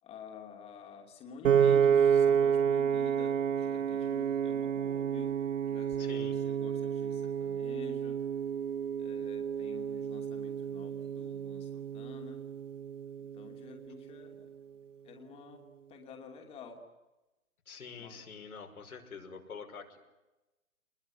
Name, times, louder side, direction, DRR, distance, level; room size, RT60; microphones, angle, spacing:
voice 1, 0.0-5.3 5.6-8.2 9.0-12.4 13.2-14.5 15.0-15.6 15.9-16.8 17.9-18.2, left 6 dB, 15° left, 3 dB, 2.8 m, -50 dB
Piano, 1.4-13.7, right 8 dB, 60° right, 1.4 m, -30 dB
voice 2, 6.0-6.4 17.7-20.0, left 5 dB, 80° left, 3 dB, 5.8 m, -46 dB
24.5 x 21.5 x 9.7 m, 1.1 s
hypercardioid pair, 155°, 42 cm